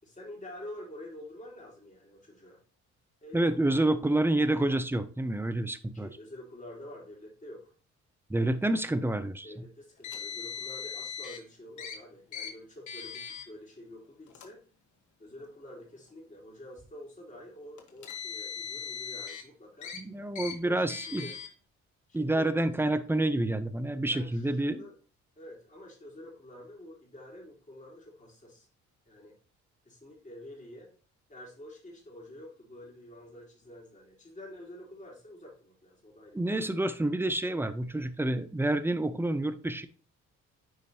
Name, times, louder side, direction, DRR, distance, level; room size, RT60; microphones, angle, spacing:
voice 1, 0.0-2.6 3.2-3.5 5.9-7.7 9.4-14.6 15.2-19.9 20.6-21.4 22.1-22.6 24.1-24.9 25.4-28.7 29.1-29.3 29.8-30.9 31.3-36.4, left 1 dB, 25° left, -3 dB, 4.1 m, -48 dB
voice 2, 3.3-6.1 8.3-9.5 19.9-21.3 22.1-24.8 36.3-39.9, right 1 dB, 5° right, 12 dB, 0.7 m, -28 dB
Car, 10.0-11.4 11.8-12.0 12.3-12.5 12.9-13.4 14.3-14.5 15.4-15.5 17.8-19.4 19.8-20.0 20.4-20.5 20.9-21.5, left 7 dB, 75° left, 1.5 m, -39 dB
9.5 x 5.1 x 2.8 m, 0.40 s
cardioid pair, 90°, 30 cm